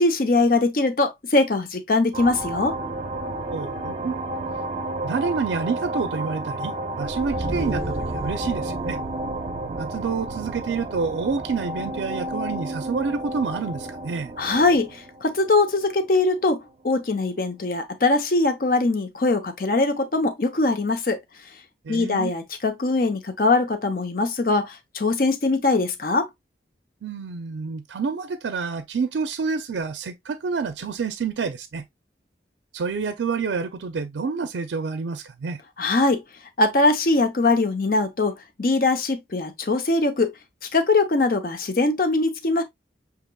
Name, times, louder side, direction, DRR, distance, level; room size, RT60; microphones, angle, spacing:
voice 1, 0.0-2.8 14.4-21.2 21.9-26.3 35.8-36.2 36.6-40.3 40.7-42.6, left 3 dB, 50° left, 0.7 m, -22 dB
sound 1, 2.1-16.3, right 2 dB, 35° right, 0.5 m, -31 dB
voice 2, 3.5-4.2 5.0-9.0 9.8-14.3 21.8-22.3 27.0-31.8 32.7-35.6, right 5 dB, 85° right, 0.4 m, -28 dB
6.4 x 2.9 x 2.2 m
head